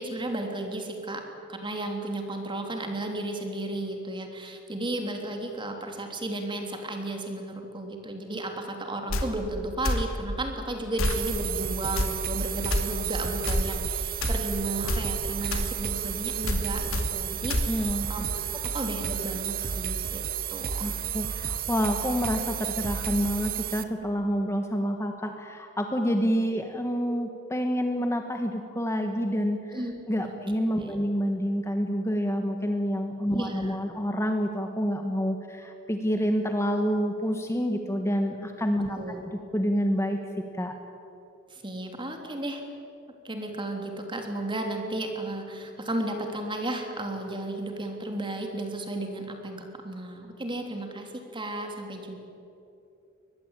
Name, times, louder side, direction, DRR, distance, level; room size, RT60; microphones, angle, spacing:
voice 1, 0.0-20.2 20.5-21.0 29.7-29.9 30.2-30.4 30.8-31.0 33.4-33.8 38.9-39.2 41.5-42.6 43.2-52.2, right 1 dB, 25° right, 3 dB, 3.2 m, -34 dB
sound 1, 9.1-9.3 9.8-10.1 11.0-11.2 12.0-12.1 12.7-12.8 13.5-13.7 14.2-14.4 14.9-15.1 15.5-15.7 16.5-16.6 16.9-17.1 17.5-17.7, left 1 dB, 90° left, 2.6 m, -26 dB
sound 2, 11.0-23.8, right 8 dB, 45° right, 1.0 m, -32 dB
voice 2, 17.7-18.1 20.8-29.8 30.1-39.0 39.5-40.8, equal, 15° left, 5 dB, 1.3 m, -28 dB
23.5 x 20.0 x 9.0 m, 2.8 s
head